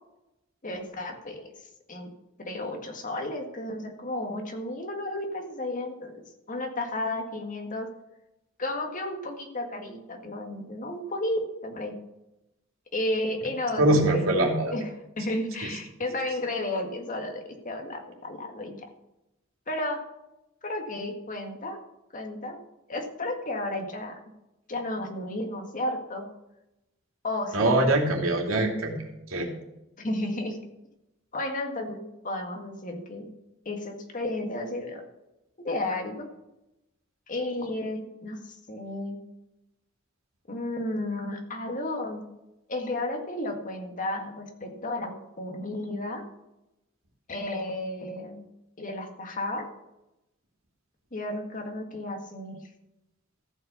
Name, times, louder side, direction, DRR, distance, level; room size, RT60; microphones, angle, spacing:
voice 1, 0.6-1.5 1.9-2.1 2.4-7.9 8.6-11.9 12.9-14.4 14.7-14.9 15.2-18.8 19.7-20.0 20.6-21.8 22.1-22.6 22.9-24.2 24.7-26.3 27.2-27.8 30.0-30.6 31.3-33.3 33.7-35.0 35.6-36.3 37.3-39.2 40.5-42.2 42.7-46.2 47.3-48.4 48.8-49.7 51.1-52.6, left 1 dB, 40° left, 3 dB, 1.9 m, -33 dB
voice 2, 13.8-14.7 27.5-28.9 29.3-29.5, right 1 dB, 90° right, 1 dB, 2.8 m, -23 dB
14.5 x 5.8 x 6.9 m, 0.91 s
head